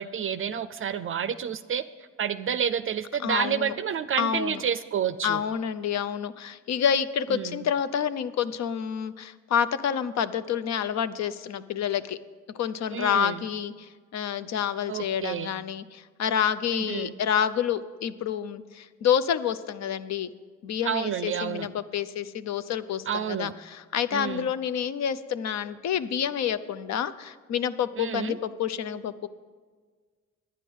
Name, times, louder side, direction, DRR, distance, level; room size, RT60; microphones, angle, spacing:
voice 1, 0.0-1.8 2.2-5.4 7.3-7.6 12.9-13.4 14.9-15.5 16.7-17.1 20.8-21.7 23.1-23.5 24.1-24.5 28.0-28.4, right 8 dB, 45° right, 13 dB, 0.4 m, -29 dB
voice 2, 3.2-3.8 4.2-4.6 5.2-12.2 12.5-20.3 20.6-29.3, left 8 dB, 60° left, 14 dB, 0.6 m, -28 dB
11.0 x 9.6 x 5.4 m, 1.5 s
cardioid pair, 90°, 30 cm